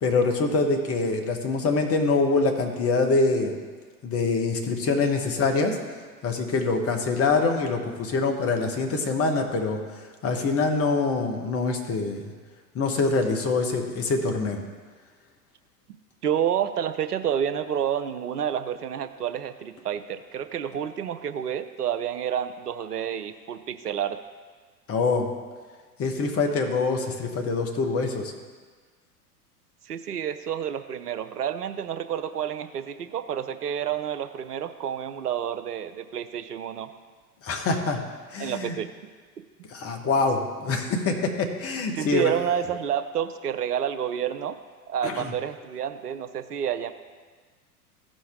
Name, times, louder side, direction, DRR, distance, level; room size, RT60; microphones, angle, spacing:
voice 1, 0.0-3.6 4.0-5.8 6.2-9.8 10.2-12.3 12.7-14.6 24.9-25.3 26.0-28.3 37.4-38.0 38.3-38.7 39.7-42.3 45.0-45.3, left 3 dB, 30° left, 3 dB, 1.4 m, -25 dB
voice 2, 16.2-24.2 29.8-36.9 38.4-38.9 41.9-44.6 44.9-46.9, right 9 dB, 80° right, 11 dB, 0.6 m, -29 dB
15.0 x 5.1 x 3.7 m, 1.5 s
figure-of-eight pair, 85°, 46 cm